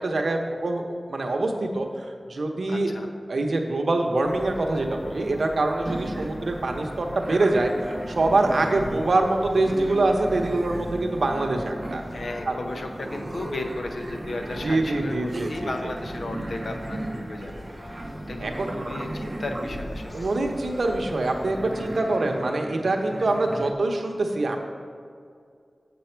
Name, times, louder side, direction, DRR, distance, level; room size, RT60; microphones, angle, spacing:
voice 1, 0.0-2.9 3.3-12.0 12.4-12.6 14.6-15.9 18.4-18.7 20.1-24.6, right 2 dB, 80° right, 3 dB, 0.8 m, -25 dB
voice 2, 2.7-3.1 6.1-6.3 12.1-17.6 18.3-20.3, left 2 dB, 80° left, 4 dB, 0.7 m, -35 dB
sound 1, 4.2-22.0, left 1 dB, 30° left, 0.6 m, -40 dB
sound 2, 5.8-23.7, right 1 dB, 35° right, 0.5 m, -37 dB
6.9 x 6.9 x 4.4 m, 2.3 s
wide cardioid pair, 60°, 0 cm